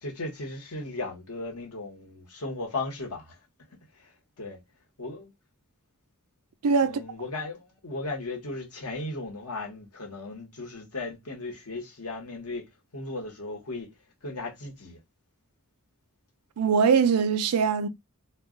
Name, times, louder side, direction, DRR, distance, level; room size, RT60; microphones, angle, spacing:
voice 1, 0.0-3.3 4.0-4.6 5.0-5.3 6.8-12.7 12.9-13.9 14.2-15.0, left 2 dB, 80° left, 1.1 m, -36 dB
voice 2, 6.6-7.0 16.6-17.9, right 6 dB, 90° right, 0.4 m, -22 dB
2.3 x 2.2 x 3.6 m
head